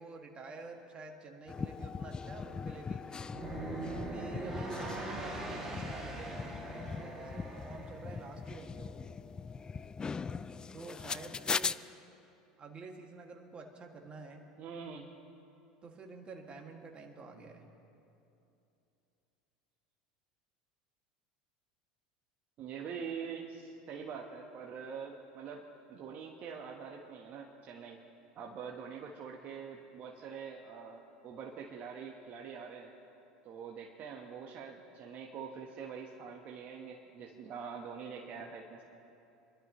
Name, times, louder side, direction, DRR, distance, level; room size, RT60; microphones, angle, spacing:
voice 1, 0.0-3.3 3.9-9.0 10.7-11.9 12.6-14.4 15.8-17.7, right 3 dB, 30° right, 2 dB, 2.0 m, -49 dB
sound 1, 1.5-11.7, left 5 dB, 20° left, 0.4 m, -40 dB
sound 2, 3.2-8.3, right 2 dB, 10° right, 2.3 m, -41 dB
voice 2, 14.6-15.1 22.6-25.6 25.9-28.0 28.4-32.9 33.4-38.8, right 6 dB, 45° right, 0 dB, 1.2 m, -44 dB
26.5 x 12.0 x 3.1 m, 2.8 s
hypercardioid pair, 85°, 4 cm